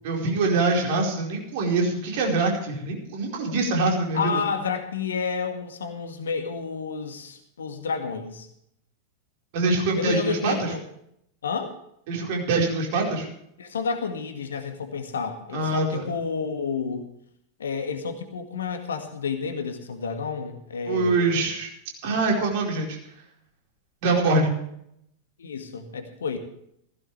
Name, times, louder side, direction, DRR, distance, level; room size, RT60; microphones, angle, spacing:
voice 1, 0.0-4.4 9.5-10.5 12.1-13.3 15.5-16.1 20.9-21.7 22.0-23.0 24.0-24.5, right 3 dB, 50° right, 0 dB, 4.6 m, -24 dB
voice 2, 4.1-8.5 10.0-10.8 11.4-11.8 13.6-17.1 17.6-21.5 25.4-26.4, left 5 dB, 65° left, 6 dB, 1.8 m, -30 dB
17.0 x 15.0 x 3.4 m, 0.73 s
figure-of-eight pair, 90°, 0 cm